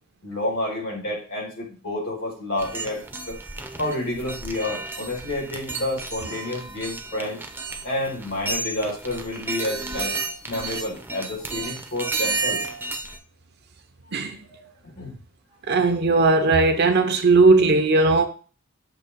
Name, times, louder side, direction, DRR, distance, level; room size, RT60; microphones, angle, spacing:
voice 1, 0.2-3.4 3.8-7.4 7.8-10.1 10.5-12.6 14.5-14.7 15.0-15.2, left 1 dB, 85° left, 2.8 m, -29 dB
sound 1, 2.6-13.2, right 3 dB, 10° right, 0.6 m, -32 dB
voice 2, 15.7-18.3, right 3 dB, 55° right, 0.8 m, -17 dB
7.0 x 2.9 x 4.6 m
head